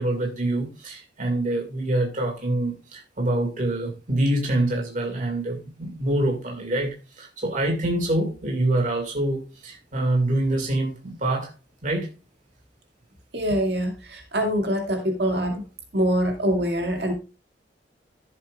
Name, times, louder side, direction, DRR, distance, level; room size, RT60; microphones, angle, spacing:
voice 1, 0.0-11.5 11.8-12.1, right 1 dB, 45° right, 2.1 m, -25 dB
voice 2, 13.3-15.6 15.9-17.1, equal, 65° right, 2.2 m, -24 dB
14.5 x 7.4 x 2.4 m
head